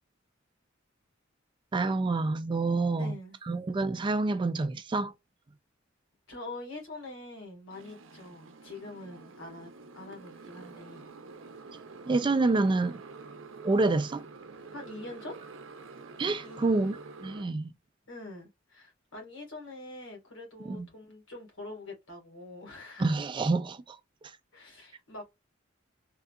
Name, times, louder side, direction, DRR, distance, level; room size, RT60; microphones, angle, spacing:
voice 1, 1.7-3.1 3.5-5.1 12.1-13.0 13.6-14.2 16.2-17.7 20.7-20.9 23.0-24.0, right 3 dB, 25° right, 0.3 m, -27 dB
voice 2, 2.9-3.4 6.3-11.1 14.7-15.4 16.4-16.9 18.1-23.1 24.5-25.3, left 2 dB, 85° left, 1.6 m, -44 dB
Motorcycle, 7.7-17.4, right 4 dB, 70° right, 0.6 m, -48 dB
3.7 x 2.3 x 2.2 m
head